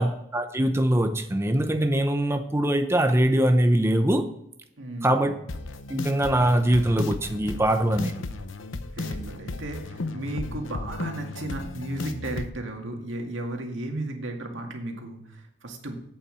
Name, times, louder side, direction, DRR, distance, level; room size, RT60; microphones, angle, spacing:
voice 1, 0.0-4.3 5.0-5.4 5.9-8.1, right 1 dB, 15° right, 6 dB, 0.6 m, -22 dB
voice 2, 4.8-5.3 9.0-16.0, right 1 dB, 85° right, 3 dB, 2.1 m, -34 dB
sound 1, 5.5-12.5, left 2 dB, 90° left, 0.8 m, -35 dB
8.5 x 7.1 x 7.6 m, 0.78 s
head